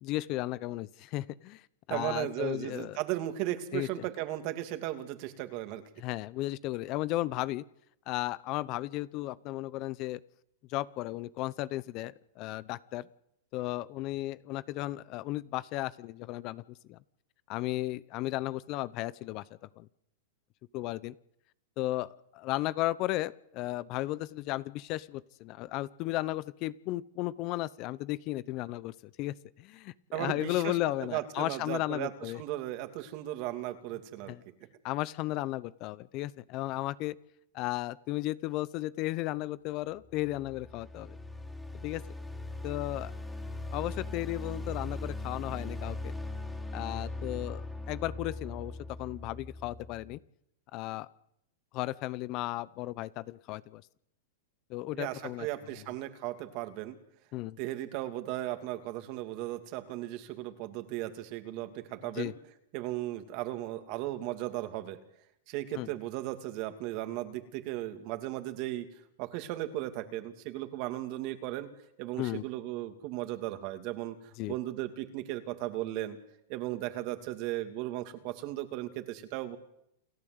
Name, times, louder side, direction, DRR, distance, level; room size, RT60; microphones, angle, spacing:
voice 1, 0.0-1.6 1.9-3.0 3.7-3.9 6.0-7.6 8.1-10.2 10.7-13.1 13.5-17.0 17.5-19.4 19.8-19.9 20.7-21.1 21.8-32.4 34.3-34.4 34.8-37.2 37.5-41.2 41.8-42.0 42.6-43.1 43.7-46.1 46.7-48.7 49.0-50.2 50.7-51.1 51.7-53.8 54.7-55.5 57.3-57.6 62.1-62.3 65.7-65.9 72.2-72.5 74.4-74.5, left 17 dB, 45° left, 19 dB, 0.8 m, -35 dB
voice 2, 1.9-5.8 30.1-34.4 54.9-56.9 57.6-62.3 62.7-65.0 65.5-68.9 69.2-71.7 72.0-76.2 76.5-79.6, right 15 dB, 50° right, 8 dB, 2.8 m, -36 dB
sound 1, 40.0-50.2, left 2 dB, 5° left, 3.7 m, -40 dB
28.5 x 12.0 x 8.1 m, 0.75 s
hypercardioid pair, 120°, 0 cm